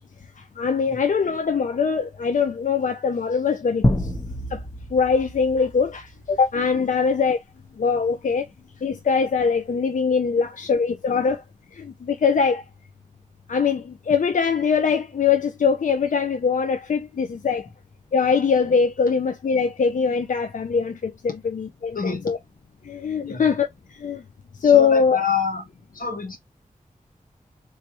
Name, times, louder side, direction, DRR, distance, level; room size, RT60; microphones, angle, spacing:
voice 1, 0.4-4.1 4.5-4.6 4.9-7.4 7.8-8.5 8.8-11.4 11.7-12.6 13.5-17.7 18.1-22.4 22.8-24.2 24.6-25.2, left 6 dB, 65° left, 0.5 m, -22 dB
sound 1, 3.8-6.7, left 1 dB, 20° left, 0.7 m, -27 dB
voice 2, 21.9-22.3 23.2-23.5 24.6-25.6 25.9-26.4, left 6 dB, 85° left, 1.1 m, -27 dB
3.3 x 3.1 x 2.8 m
wide cardioid pair, 95°, 14 cm